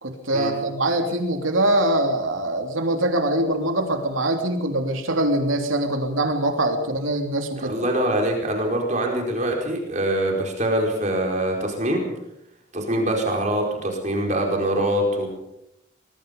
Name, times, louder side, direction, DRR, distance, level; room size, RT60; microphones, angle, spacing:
voice 1, 0.0-7.8, right 1 dB, 85° right, 4 dB, 3.1 m, -23 dB
voice 2, 7.6-12.0 12.7-15.3, right 1 dB, 35° right, 1 dB, 4.9 m, -24 dB
25.5 x 20.5 x 5.4 m, 0.83 s
head